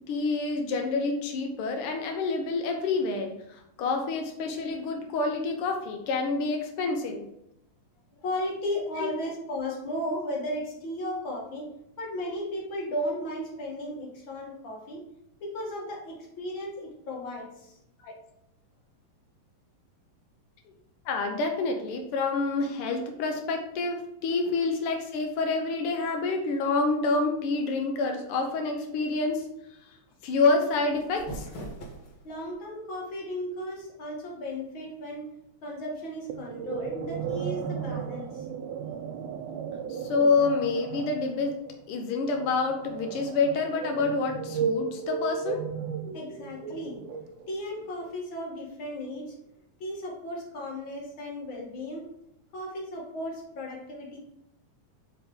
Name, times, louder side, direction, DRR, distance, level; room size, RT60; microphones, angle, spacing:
voice 1, 0.1-7.2 9.0-9.1 18.0-18.1 21.0-29.5 30.2-31.5 39.9-41.5 41.9-45.7, left 3 dB, 85° left, 3 dB, 1.2 m, -28 dB
voice 2, 8.2-11.7 12.0-15.0 15.4-17.8 32.2-35.3 35.6-38.5 46.1-47.1 47.5-49.4 49.8-52.1 52.5-54.2, left 1 dB, 40° left, -2 dB, 2.2 m, -35 dB
sound 1, 30.9-32.5, right 1 dB, 60° left, 1.2 m, -41 dB
sound 2, 36.3-47.6, right 6 dB, 80° right, 1.5 m, -35 dB
7.0 x 5.2 x 3.7 m, 0.82 s
omnidirectional pair, 3.8 m